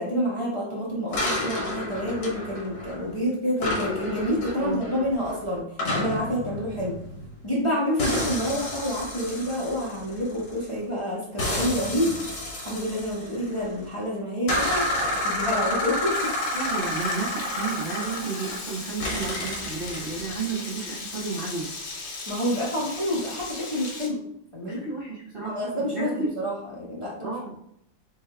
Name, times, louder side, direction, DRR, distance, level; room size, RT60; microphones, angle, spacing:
voice 1, 0.0-5.6 5.9-6.9 7.4-16.3 22.3-24.2 24.5-24.8 25.4-27.3, equal, 20° left, -6 dB, 1.0 m, -28 dB
sound 1, 1.1-3.2 3.6-7.6 8.0-10.8 11.4-13.8 14.5-18.7 19.0-20.5, left 1 dB, 65° left, 1.7 m, -30 dB
Frying (food), 16.1-24.1, left 3 dB, 45° left, 0.7 m, -38 dB
voice 2, 16.5-21.7 24.6-26.3 27.2-27.5, right 4 dB, 40° right, -7 dB, 0.9 m, -32 dB
6.7 x 3.3 x 2.3 m, 0.73 s
omnidirectional pair, 1.9 m